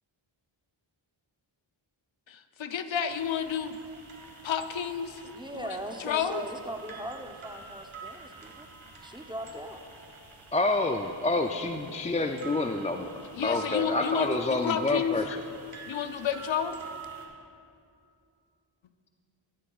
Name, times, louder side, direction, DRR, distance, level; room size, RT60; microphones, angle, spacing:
voice 1, 2.3-3.8 4.4-6.4 13.3-15.4 15.9-16.8, left 8 dB, 65° left, 10 dB, 0.6 m, -31 dB
sound 1, 3.1-17.3, right 4 dB, 70° right, 1.6 m, -47 dB
voice 2, 5.3-8.7 9.0-9.8, right 1 dB, 10° right, 4 dB, 0.7 m, -39 dB
voice 3, 10.5-13.1 13.4-15.4, left 2 dB, 15° left, 5 dB, 0.3 m, -28 dB
15.5 x 11.0 x 2.4 m, 2.5 s
wide cardioid pair, 65°, 49 cm